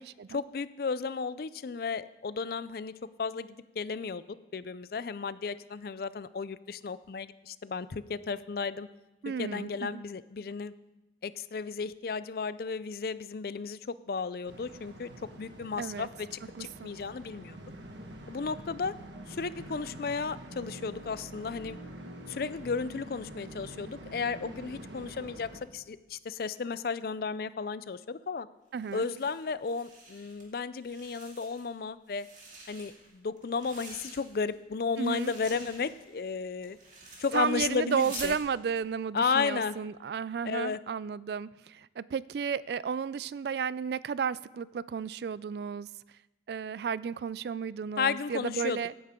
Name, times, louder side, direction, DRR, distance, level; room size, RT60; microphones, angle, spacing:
voice 1, 0.3-2.9 3.2-3.5 3.8-4.2 4.5-8.9 9.4-10.7 11.2-15.1 15.4-17.6 18.3-18.9 19.3-21.8 22.3-28.5 28.9-32.3 32.7-36.8 37.2-38.3 39.1-39.8 40.4-40.8 48.0-48.8, left 5 dB, 55° left, 16 dB, 0.4 m, -34 dB
voice 2, 9.2-10.0 15.8-16.1 16.5-16.9 28.7-29.0 35.0-35.3 37.3-45.9 46.5-48.9, right 6 dB, 60° right, 19 dB, 0.3 m, -33 dB
sound 1, 14.5-25.6, right 1 dB, 75° right, 1.4 m, -46 dB
sound 2, 28.7-30.4 30.7-31.7 32.1-34.6 34.9-38.4, right 3 dB, 40° right, 2.4 m, -48 dB
16.0 x 9.3 x 3.7 m, 1.0 s
head